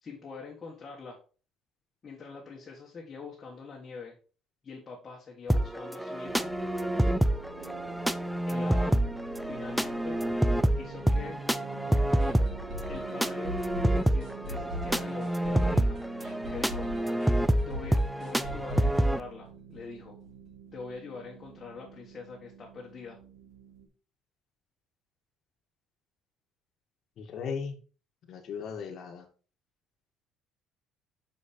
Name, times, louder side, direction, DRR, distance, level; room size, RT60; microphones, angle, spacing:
voice 1, 0.0-1.2 2.0-4.1 4.6-6.5 8.5-9.0 9.4-10.2 10.7-11.4 12.9-13.6 13.9-16.0 16.3-16.9 17.6-20.2 20.7-23.2, left 4 dB, 25° left, -2 dB, 1.6 m, -44 dB
sound 1, 5.5-19.2, right 1 dB, 5° right, 0.3 m, -28 dB
sound 2, 6.2-23.9, right 7 dB, 80° right, 2.0 m, -48 dB
sound 3, 12.2-19.9 20.2-20.3 20.7-20.8, left 1 dB, 50° right, 3.3 m, -40 dB
voice 2, 27.2-27.8 28.3-29.3, left 6 dB, 45° left, 4 dB, 1.6 m, -37 dB
6.3 x 5.3 x 4.4 m, 0.37 s
cardioid pair, 150°, 0 cm